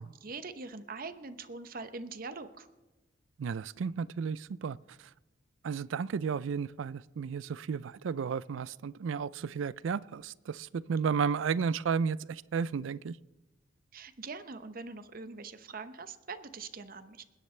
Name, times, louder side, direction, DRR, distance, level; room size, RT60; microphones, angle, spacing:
voice 1, 0.0-2.7 13.9-17.2, right 4 dB, 45° right, 0.8 m, -43 dB
voice 2, 3.4-5.1 5.6-13.2, right 6 dB, 80° right, 0.4 m, -33 dB
27.5 x 10.0 x 3.3 m
head